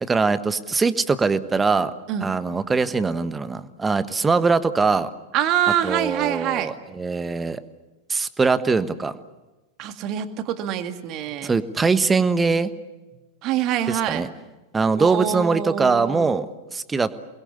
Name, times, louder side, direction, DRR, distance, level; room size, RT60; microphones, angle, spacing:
voice 1, 0.0-1.9 2.2-5.1 5.8-7.6 8.1-9.2 11.4-12.7 13.9-14.3 14.7-16.5 16.7-17.1, right 4 dB, 15° right, 13 dB, 1.3 m, -22 dB
voice 2, 5.3-6.7 9.8-11.5 13.4-14.3 15.0-16.4, right 11 dB, 40° right, 8 dB, 2.1 m, -25 dB
28.5 x 21.5 x 8.4 m, 1.1 s
figure-of-eight pair, 90°, 0 cm